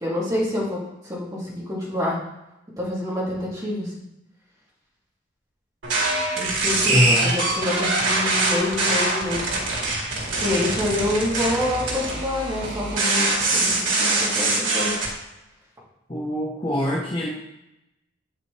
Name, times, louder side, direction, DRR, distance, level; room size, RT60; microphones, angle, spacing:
voice 1, 0.0-2.2 2.8-3.9 6.4-7.0 7.2-9.5 10.4-15.0, left 1 dB, 20° right, -7 dB, 2.5 m, -27 dB
sound 1, 5.8-15.1, right 2 dB, 90° right, 2.0 m, -23 dB
voice 2, 6.9-7.3 16.1-17.3, left 1 dB, 30° left, -2 dB, 0.9 m, -23 dB
8.3 x 5.6 x 3.3 m, 0.91 s
head